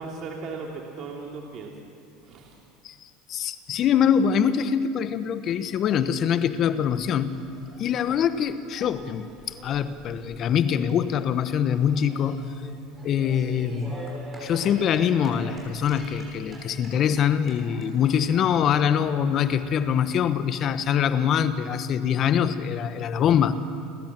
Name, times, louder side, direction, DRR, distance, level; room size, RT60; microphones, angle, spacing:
voice 1, 0.0-1.7 2.2-2.6, right 4 dB, 50° right, 0 dB, 2.8 m, -37 dB
voice 2, 3.3-7.4 7.8-9.3 9.6-12.5 13.0-14.0 14.4-23.6, left 8 dB, 45° left, 13 dB, 1.1 m, -24 dB
sound 1, 6.8-20.1, right 1 dB, 20° right, 7.5 m, -46 dB
29.0 x 13.5 x 7.6 m, 2.4 s
supercardioid pair, 100°, 0 cm